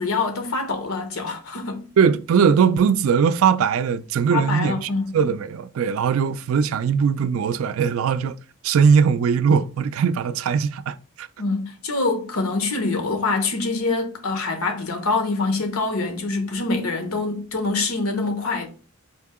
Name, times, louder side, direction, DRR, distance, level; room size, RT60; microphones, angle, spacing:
voice 1, 0.0-1.9 4.3-5.1 11.4-18.7, left 3 dB, 85° left, 1.0 m, -25 dB
voice 2, 2.0-8.4 8.6-11.3, right 6 dB, 70° right, 0.3 m, -20 dB
4.4 x 2.8 x 3.5 m
head